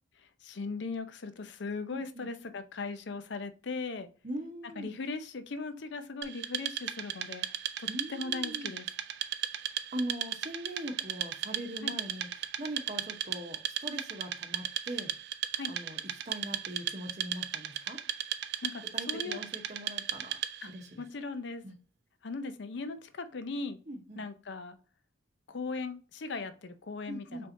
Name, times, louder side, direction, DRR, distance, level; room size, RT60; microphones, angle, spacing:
voice 1, 0.4-4.1 4.8-7.5 8.1-8.9 11.8-11.9 15.5-15.7 18.6-19.4 20.6-20.7 21.0-21.6 22.2-23.8 24.2-24.8 25.5-27.5, left 4 dB, 60° left, 0.5 m, -38 dB
voice 2, 1.9-2.3 4.2-4.9 7.9-8.8 9.9-15.1 15.7-16.0 16.2-18.0 18.9-20.4 20.7-21.0 21.6-21.7 23.9-24.2 27.1-27.5, right 1 dB, 35° right, 0.9 m, -41 dB
Wood, 6.2-20.8, right 11 dB, 55° right, 0.4 m, -36 dB
4.3 x 3.4 x 2.6 m
head